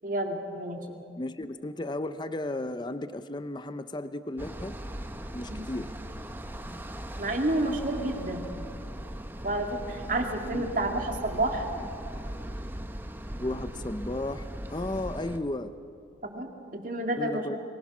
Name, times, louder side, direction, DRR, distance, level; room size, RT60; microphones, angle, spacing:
voice 1, 0.0-1.0 5.5-5.7 7.2-8.5 9.4-11.7 16.2-17.6, right 1 dB, 45° right, 3 dB, 2.2 m, -30 dB
voice 2, 1.2-4.8 5.3-5.9 10.5-10.6 13.3-14.4 14.7-15.7 17.2-17.6, left 1 dB, 25° left, 11 dB, 0.6 m, -34 dB
sound 1, 4.4-15.4, equal, 10° right, 0.8 m, -39 dB
24.0 x 20.0 x 6.1 m, 2.4 s
head